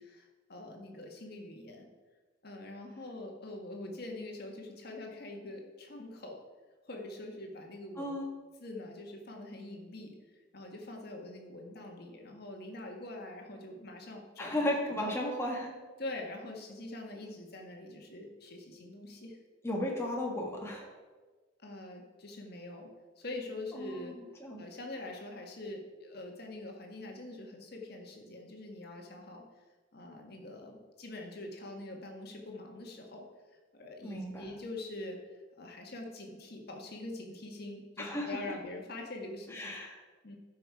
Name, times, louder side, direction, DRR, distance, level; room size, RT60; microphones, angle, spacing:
voice 1, 0.0-1.8 2.4-6.4 6.9-8.1 8.6-10.1 10.5-15.1 16.0-19.4 21.6-22.9 23.2-24.2 24.6-29.4 29.9-33.3 33.7-35.2 35.6-39.7 40.2-40.4, left 2 dB, 55° left, 1 dB, 1.7 m, -44 dB
voice 2, 8.0-8.3 14.4-15.7 19.6-20.9 23.7-24.6 34.0-34.4 38.0-38.4 39.5-40.0, left 1 dB, 15° left, -1 dB, 1.7 m, -35 dB
13.0 x 5.6 x 4.8 m, 1.3 s
head